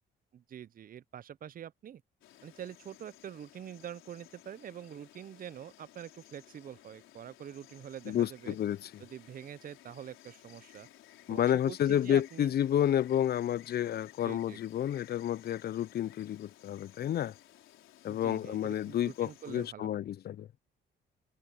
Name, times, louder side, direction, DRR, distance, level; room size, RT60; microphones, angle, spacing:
voice 1, 0.3-2.0 2.4-8.6 9.0-10.9 11.3-12.5 14.2-14.6 18.1-20.0, right 9 dB, 45° right, 0.6 m, -45 dB
Insect, 2.2-19.7, left 13 dB, 90° left, 4.0 m, -58 dB
voice 2, 8.1-9.0 11.3-17.3 18.0-20.6, left 10 dB, 55° left, 0.5 m, -30 dB
cardioid pair, 90°, 20 cm